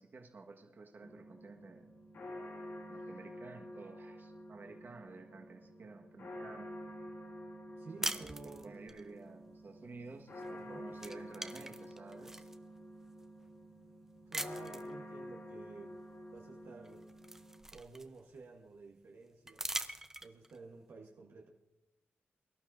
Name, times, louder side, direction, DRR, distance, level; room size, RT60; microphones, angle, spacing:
voice 1, 0.0-1.9 2.9-6.7 8.0-12.5, right 3 dB, 50° right, 1 dB, 1.6 m, -52 dB
sound 1, 1.0-17.6, equal, 80° left, 2.6 m, -49 dB
voice 2, 7.8-8.8 10.5-10.8 14.3-17.2 17.7-19.6 20.2-21.5, right 4 dB, 70° right, -1 dB, 1.3 m, -52 dB
sound 2, 8.0-9.0 10.4-10.6 10.9-12.6 13.2-13.3 14.3-14.9 16.4-16.5 16.8-18.4 19.5-20.6, right 1 dB, 10° right, 0.6 m, -41 dB
23.0 x 12.0 x 2.7 m, 0.96 s
wide cardioid pair, 100°, 4 cm